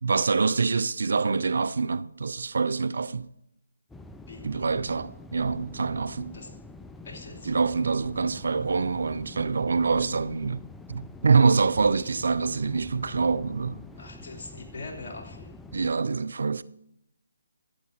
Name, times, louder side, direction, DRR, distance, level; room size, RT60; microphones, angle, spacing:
voice 1, 0.0-3.3 4.4-6.4 7.5-13.8 15.7-16.6, right 4 dB, 60° right, 0.4 m, -25 dB
sound 1, 3.9-15.9, left 2 dB, 5° left, 0.4 m, -46 dB
voice 2, 7.0-7.5 14.0-15.6, left 2 dB, 40° left, 3.0 m, -42 dB
12.0 x 9.3 x 4.3 m
figure-of-eight pair, 145°, 0 cm